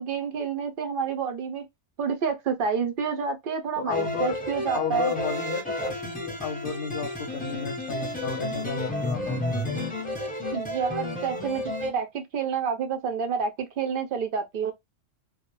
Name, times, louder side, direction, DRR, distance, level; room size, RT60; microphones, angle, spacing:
voice 1, 0.0-1.7 2.0-5.1 10.5-14.7, right 6 dB, 60° right, 0.6 m, -29 dB
voice 2, 3.8-4.4 4.7-9.9, left 6 dB, 55° left, 0.7 m, -32 dB
sound 1, 3.9-11.9, left 1 dB, 10° left, 0.8 m, -31 dB
2.3 x 2.0 x 3.0 m
omnidirectional pair, 1.3 m